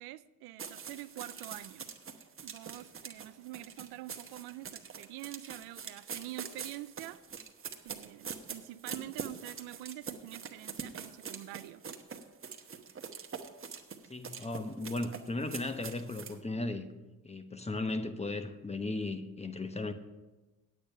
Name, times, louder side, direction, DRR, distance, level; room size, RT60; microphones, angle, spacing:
voice 1, 0.0-1.9 2.4-7.2 7.8-11.8, right 16 dB, 85° right, 15 dB, 0.5 m, -46 dB
sound 1, 0.6-16.4, right 6 dB, 35° right, 1.0 m, -44 dB
voice 2, 14.1-16.9 17.2-19.9, left 2 dB, 15° left, 8 dB, 1.0 m, -36 dB
8.7 x 8.7 x 5.4 m, 1.1 s
supercardioid pair, 75°, 37 cm